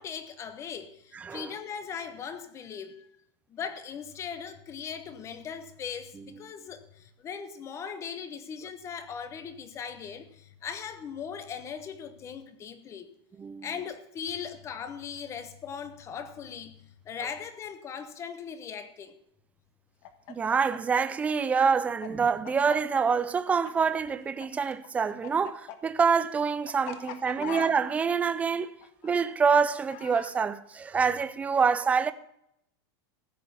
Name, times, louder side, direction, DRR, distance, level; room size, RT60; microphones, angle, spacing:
voice 1, 0.0-3.1 3.5-13.1 13.6-16.8 17.1-19.2, left 7 dB, 20° left, 1.0 m, -39 dB
voice 2, 1.1-1.5 6.2-6.3 13.4-13.7 20.3-28.7 29.0-32.1, right 5 dB, 10° right, 0.4 m, -26 dB
Chicken rooster, 20.0-24.5 24.7-30.3, left 10 dB, 40° left, 1.2 m, -41 dB
15.5 x 6.3 x 7.0 m
supercardioid pair, 165°, 14 cm